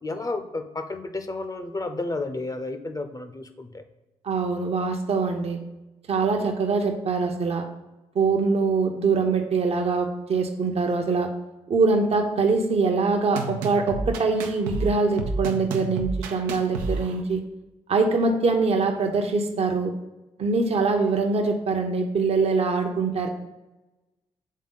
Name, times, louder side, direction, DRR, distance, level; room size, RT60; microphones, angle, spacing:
voice 1, 0.0-3.8, left 2 dB, 25° left, 8 dB, 0.7 m, -32 dB
voice 2, 4.2-5.6 6.1-7.7 8.1-11.3 11.7-17.4 17.9-19.9 20.4-23.3, right 4 dB, 45° right, 4 dB, 0.8 m, -23 dB
sound 1, 13.4-17.2, right 3 dB, 80° right, 0.6 m, -30 dB
7.5 x 3.6 x 3.8 m, 1.0 s
hypercardioid pair, 45°, 14 cm